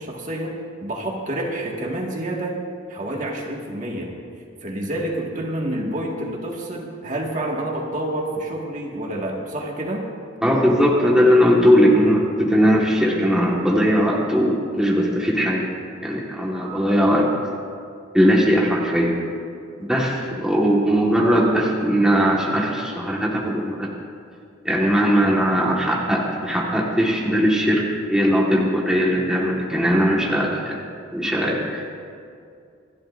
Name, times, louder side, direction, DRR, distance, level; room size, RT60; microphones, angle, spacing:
voice 1, 0.0-2.6 2.9-4.1 4.6-10.1, right 1 dB, 40° right, -1 dB, 1.7 m, -28 dB
voice 2, 10.4-15.7 16.0-17.3 18.1-19.1 19.8-23.9 24.6-27.8 28.1-30.8 31.1-31.9, equal, 5° right, -4 dB, 1.5 m, -19 dB
27.0 x 12.0 x 2.5 m, 2.4 s
head